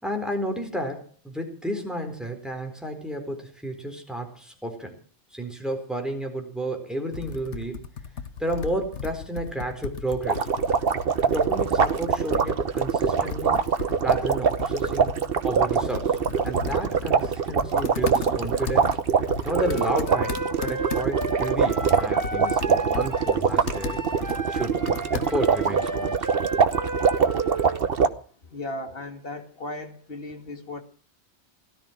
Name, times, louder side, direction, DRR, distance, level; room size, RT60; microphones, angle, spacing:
voice 1, 0.0-4.9 5.3-7.9 8.4-10.5 11.2-13.6 14.0-15.1 15.4-16.2 16.4-18.9 19.4-24.0 24.5-26.3, right 1 dB, ahead, 3 dB, 4.2 m, -31 dB
Computer keyboard, 7.1-25.6, left 6 dB, 75° left, 1.4 m, -37 dB
sound 1, 10.2-28.1, right 6 dB, 55° right, 1.2 m, -23 dB
Wind instrument woodwind instrument, 19.5-27.8, right 2 dB, 15° right, 1.0 m, -33 dB
voice 2, 28.4-30.8, left 2 dB, 50° left, 6 dB, 2.5 m, -36 dB
17.5 x 13.0 x 6.0 m, 0.41 s
omnidirectional pair, 1.2 m